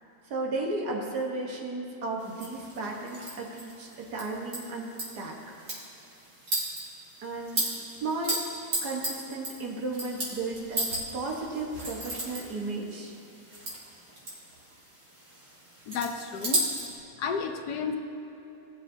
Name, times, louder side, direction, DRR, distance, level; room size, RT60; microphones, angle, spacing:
voice 1, 0.3-5.4 7.2-7.7 8.0-8.4 8.8-13.1, right 3 dB, 85° right, -1 dB, 1.9 m, -34 dB
sound 1, 2.2-17.0, right 1 dB, 65° right, 2.7 m, -36 dB
voice 2, 15.9-16.6 17.2-18.0, left 5 dB, 85° left, 5 dB, 1.3 m, -32 dB
18.5 x 7.2 x 2.7 m, 3.0 s
omnidirectional pair, 1.7 m